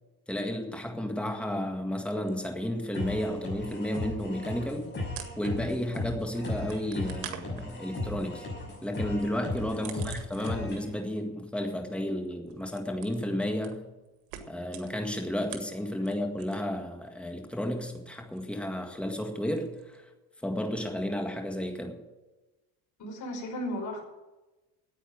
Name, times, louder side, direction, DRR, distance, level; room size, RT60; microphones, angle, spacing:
voice 1, 0.3-4.9 5.4-8.5 8.8-13.9 14.5-20.1 20.4-22.0, left 1 dB, 5° left, 3 dB, 1.8 m, -32 dB
sound 1, 2.1-2.9 3.2-5.9 6.2-10.9 11.2-16.7 17.0-20.0, right 11 dB, 85° right, 1.8 m, -48 dB
sound 2, 2.9-10.9, left 2 dB, 25° left, 6.1 m, -36 dB
voice 2, 23.0-24.0, left 1 dB, 45° left, 1 dB, 5.2 m, -35 dB
10.0 x 8.9 x 9.2 m, 1.1 s
cardioid pair, 120°, 41 cm